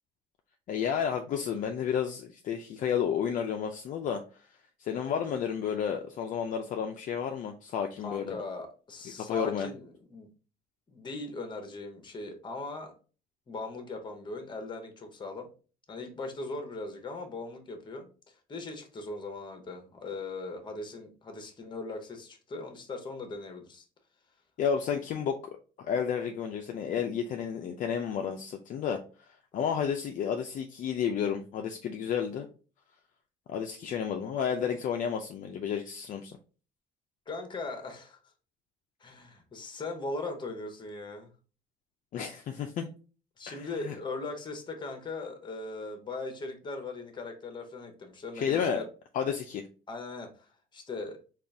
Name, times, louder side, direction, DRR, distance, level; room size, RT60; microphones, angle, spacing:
voice 1, 0.7-4.2 4.8-8.4 9.2-9.7 24.6-29.0 29.5-32.5 33.5-36.4 42.1-42.9 43.5-43.9 48.3-48.8 49.1-49.6, left 7 dB, 50° left, 4 dB, 0.4 m, -31 dB
voice 2, 8.0-10.3 10.9-12.9 13.5-15.5 15.9-23.8 37.3-38.2 39.0-41.3 43.4-48.9 49.9-51.2, left 3 dB, 30° left, 5 dB, 0.8 m, -39 dB
3.8 x 2.4 x 3.3 m, 0.37 s
cardioid pair, 110°, 17 cm